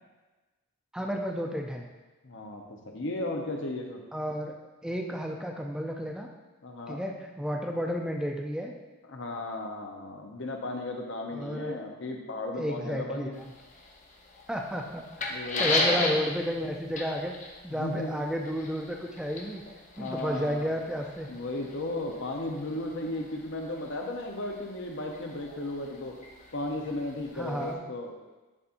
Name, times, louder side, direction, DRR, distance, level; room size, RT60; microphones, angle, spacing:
voice 1, 0.9-1.9 4.1-4.5 4.8-6.3 6.9-8.7 11.3-11.8 12.5-13.3 14.5-17.4 17.6-19.6 20.0-21.3 27.3-27.8, equal, 5° right, 1 dB, 0.5 m, -32 dB
voice 2, 2.2-4.0 6.6-7.0 9.1-13.4 15.3-15.8 17.7-18.3 20.0-20.7 21.3-26.1 26.5-28.1, left 2 dB, 60° left, 1 dB, 0.9 m, -35 dB
sound 1, 13.3-27.7, left 2 dB, 35° left, 0.7 m, -37 dB
11.0 x 4.2 x 2.6 m, 1.2 s
head